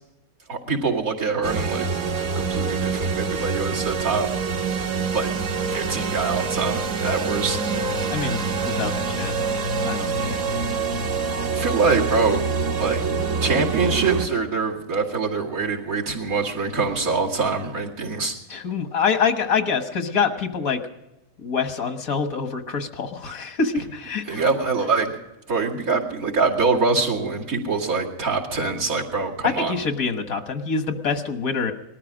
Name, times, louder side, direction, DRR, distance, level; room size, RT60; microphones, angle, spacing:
voice 1, 0.5-1.9 2.4-4.3 5.1-5.3 5.7-7.6 11.5-12.4 12.8-13.0 13.4-18.3 24.3-25.1 25.5-29.8, right 4 dB, 85° right, -3 dB, 2.8 m, -24 dB
sound 1, 1.4-14.3, right 4 dB, 65° right, 1.4 m, -25 dB
voice 2, 8.1-9.3 9.8-10.4 18.5-20.8 21.4-24.4 29.4-31.7, left 5 dB, 90° left, 7 dB, 1.8 m, -25 dB
19.5 x 13.5 x 5.0 m, 0.95 s
omnidirectional pair, 1.4 m